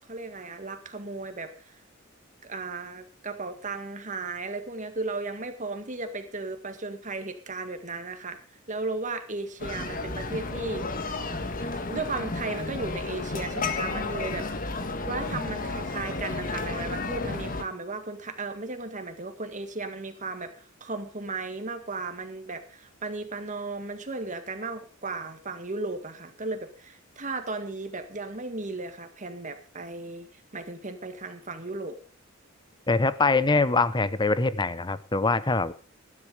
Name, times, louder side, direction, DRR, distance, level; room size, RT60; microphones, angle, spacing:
voice 1, 0.1-1.8 2.4-8.4 8.7-11.1 11.7-14.8 15.0-30.3 30.5-32.0, right 3 dB, 35° right, 7 dB, 1.9 m, -35 dB
sound 1, 9.6-17.6, left 3 dB, 40° left, 1.6 m, -32 dB
voice 2, 32.9-35.7, left 3 dB, 20° left, 16 dB, 0.8 m, -23 dB
13.5 x 12.0 x 5.1 m, 0.36 s
head